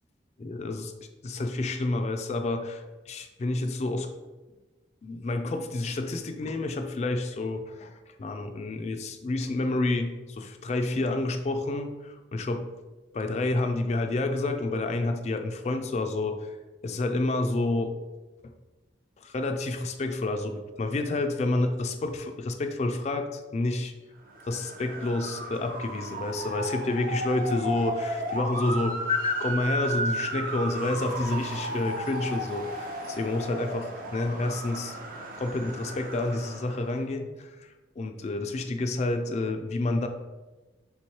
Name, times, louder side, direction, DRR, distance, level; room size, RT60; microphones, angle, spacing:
voice 1, 0.4-0.9 1.2-4.1 5.0-12.7 13.1-16.6 16.8-18.0 18.4-18.5 19.2-23.9 24.4-35.0 35.4-40.1, left 2 dB, 40° left, 6 dB, 0.3 m, -29 dB
Motor vehicle (road) / Siren, 24.3-37.0, right 1 dB, 50° right, 0.5 m, -34 dB
3.5 x 3.1 x 4.3 m, 1.2 s
head